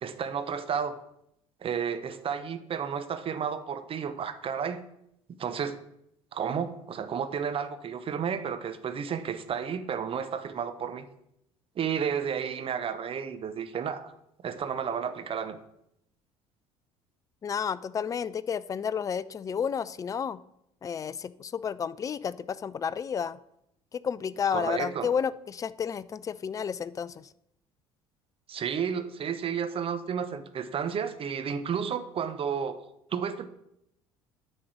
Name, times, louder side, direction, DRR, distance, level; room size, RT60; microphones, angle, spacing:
voice 1, 0.0-0.9 1.6-4.8 5.4-5.8 6.3-11.1 11.8-14.1 14.4-15.6 24.5-25.1 28.5-32.8 33.1-33.5, right 7 dB, 35° right, 11 dB, 0.8 m, -32 dB
voice 2, 17.4-20.4 20.8-23.4 23.9-27.3, left 7 dB, 20° left, 18 dB, 0.3 m, -31 dB
8.5 x 5.3 x 6.0 m, 0.80 s
figure-of-eight pair, 60°, 16 cm